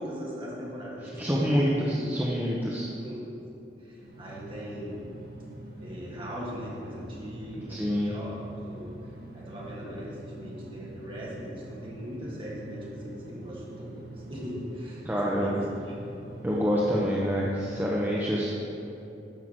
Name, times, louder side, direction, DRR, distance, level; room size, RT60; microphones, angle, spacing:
voice 1, 0.0-2.2 2.8-5.1 5.8-16.0, equal, 30° right, -5 dB, 2.5 m, -40 dB
voice 2, 1.2-2.9 7.7-8.1 15.0-15.6 16.4-18.5, equal, 10° right, -5 dB, 0.9 m, -26 dB
sound 1, 4.0-17.8, right 1 dB, 55° right, 2.3 m, -45 dB
12.5 x 5.7 x 7.6 m, 2.8 s
head